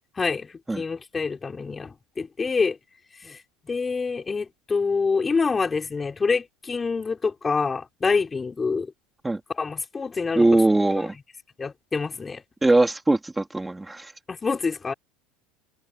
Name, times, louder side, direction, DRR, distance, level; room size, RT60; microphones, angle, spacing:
voice 1, 0.1-2.8 3.2-3.4 3.7-8.9 9.6-10.4 11.6-12.4 14.3-14.9, left 4 dB, 20° left, 4.6 m, -26 dB
voice 2, 10.4-11.2 12.6-14.1, right 2 dB, 10° right, 3.3 m, -21 dB
supercardioid pair, 105°, 0 cm